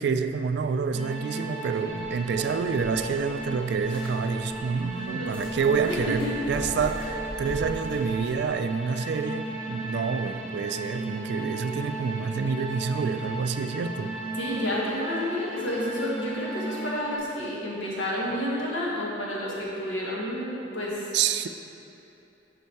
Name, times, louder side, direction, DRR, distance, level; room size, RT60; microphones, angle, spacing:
voice 1, 0.0-14.2 21.1-21.5, right 5 dB, 60° right, 9 dB, 0.3 m, -28 dB
sound 1, 0.9-17.2, right 2 dB, 25° left, 1.0 m, -35 dB
sound 2, 2.0-8.5, equal, 5° left, 1.5 m, -41 dB
voice 2, 5.0-5.4 5.8-6.3 14.4-21.1, left 1 dB, 85° left, -5 dB, 1.6 m, -30 dB
7.0 x 5.4 x 4.6 m, 2.9 s
head